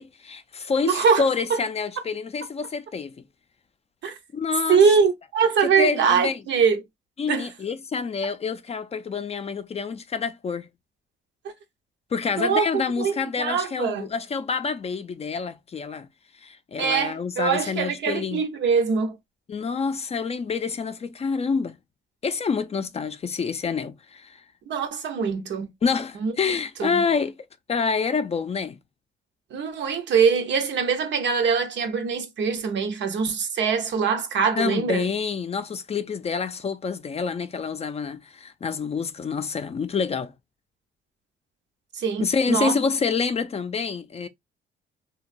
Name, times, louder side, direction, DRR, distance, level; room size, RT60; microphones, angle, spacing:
voice 1, 0.0-3.2 4.3-4.8 5.8-6.4 7.2-10.7 12.1-16.1 16.4-18.4 19.5-21.8 22.2-24.4 25.8-27.3 27.7-28.8 34.6-40.3 42.2-44.3, left 5 dB, 30° left, 0.4 m, -27 dB
voice 2, 0.8-1.2 1.5-1.6 4.0-4.2 4.7-6.8 7.3-7.5 12.4-12.7 13.0-14.1 16.8-19.2 24.7-25.7 26.2-26.3 26.8-27.0 29.5-35.1 41.9-42.8, right 6 dB, 65° right, 0.7 m, -23 dB
2.9 x 2.2 x 2.5 m
cardioid pair, 90°, 20 cm